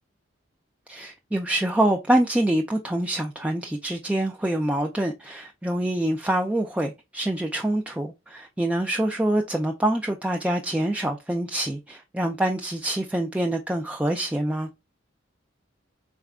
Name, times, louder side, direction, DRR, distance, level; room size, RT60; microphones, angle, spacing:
voice 1, 0.9-14.7, right 1 dB, 5° right, 0.3 m, -25 dB
4.2 x 3.6 x 2.3 m
head